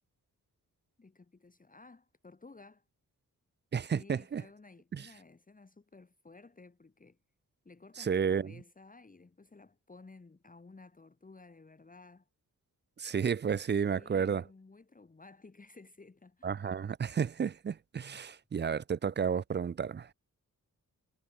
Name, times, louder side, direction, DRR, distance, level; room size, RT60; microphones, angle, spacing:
voice 1, 1.0-2.8 3.9-7.2 7.7-12.3 13.9-16.6, left 3 dB, 25° left, 1.7 m, -55 dB
voice 2, 3.7-4.4 4.9-5.1 8.0-8.5 13.0-14.4 16.4-20.1, right 7 dB, 35° right, 0.4 m, -32 dB
wide cardioid pair, 145°, 34 cm